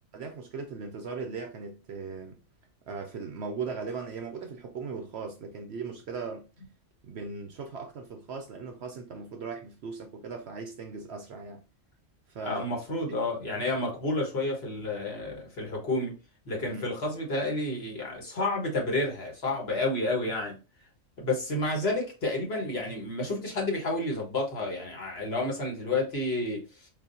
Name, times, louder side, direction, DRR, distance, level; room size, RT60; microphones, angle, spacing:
voice 1, 0.1-2.4 2.9-6.5 7.0-11.6 12.3-12.7 16.6-16.9, right 4 dB, 60° right, 0.7 m, -38 dB
voice 2, 12.4-16.1 16.4-20.6 21.2-26.6, left 2 dB, 50° left, 1.4 m, -30 dB
4.8 x 2.7 x 2.6 m
omnidirectional pair, 1.4 m